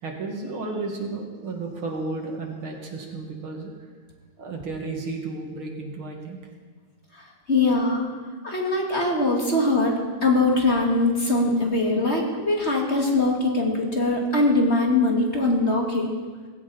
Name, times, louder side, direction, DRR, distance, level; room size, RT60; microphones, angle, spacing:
voice 1, 0.0-3.9 4.4-6.4, right 3 dB, 75° right, 1 dB, 3.2 m, -33 dB
voice 2, 7.5-8.1 8.4-9.9 10.2-16.1, left 2 dB, 30° left, 0 dB, 2.5 m, -22 dB
20.0 x 16.5 x 4.3 m, 1.4 s
omnidirectional pair, 2.3 m